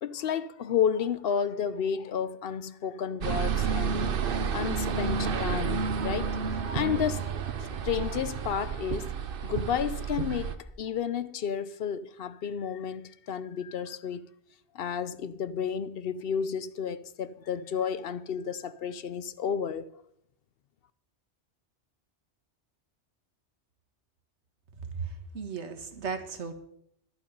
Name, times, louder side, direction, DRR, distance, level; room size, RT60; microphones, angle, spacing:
voice 1, 0.0-4.1 4.5-6.4 6.7-7.2 7.8-9.1 9.4-14.3 14.7-19.9, left 8 dB, 60° left, 0.8 m, -31 dB
sound 1, 3.2-10.5, right 6 dB, 55° right, 0.9 m, -30 dB
voice 2, 24.9-26.5, right 5 dB, 75° right, 1.7 m, -36 dB
11.5 x 11.0 x 5.4 m
omnidirectional pair, 1.2 m